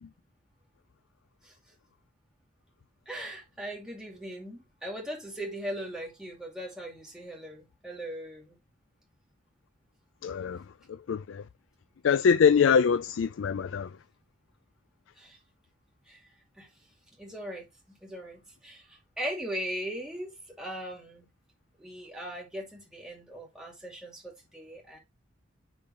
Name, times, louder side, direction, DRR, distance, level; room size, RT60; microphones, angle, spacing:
voice 1, 3.1-8.6 15.2-15.4 16.1-16.2 16.6-16.7 17.2-21.3 21.8-25.0, equal, 5° right, 2.4 m, -39 dB
voice 2, 10.2-10.6 11.1-11.4 12.0-13.9, left 6 dB, 85° left, 0.4 m, -23 dB
10.5 x 3.9 x 3.2 m
head